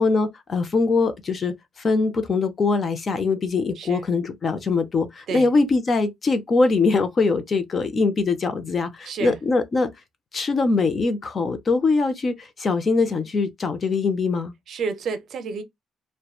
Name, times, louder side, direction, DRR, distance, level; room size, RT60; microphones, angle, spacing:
voice 1, 0.0-9.9 10.3-14.5, left 4 dB, 35° left, 0.5 m, -22 dB
voice 2, 3.8-4.1 5.3-5.5 9.0-9.4 14.7-15.6, right 5 dB, 55° right, 0.6 m, -30 dB
2.9 x 2.1 x 2.3 m
cardioid pair, 140°, 0 cm